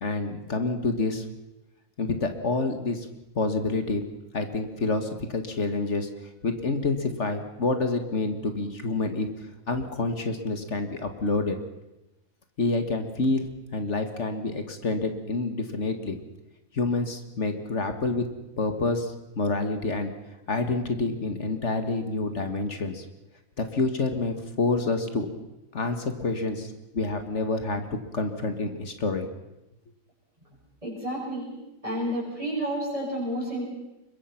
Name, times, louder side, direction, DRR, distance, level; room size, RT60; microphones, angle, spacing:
voice 1, 0.0-1.3 2.0-3.1 3.3-4.0 4.3-6.1 6.4-9.3 9.7-11.6 12.6-16.2 16.7-18.3 18.6-20.1 20.5-23.1 23.6-25.3 25.7-27.8 28.1-29.3, left 3 dB, 55° left, 7 dB, 2.1 m, -28 dB
voice 2, 30.8-31.6 31.8-33.6, right 1 dB, 25° right, -8 dB, 7.0 m, -30 dB
24.5 x 22.5 x 5.9 m, 0.96 s
omnidirectional pair, 1.4 m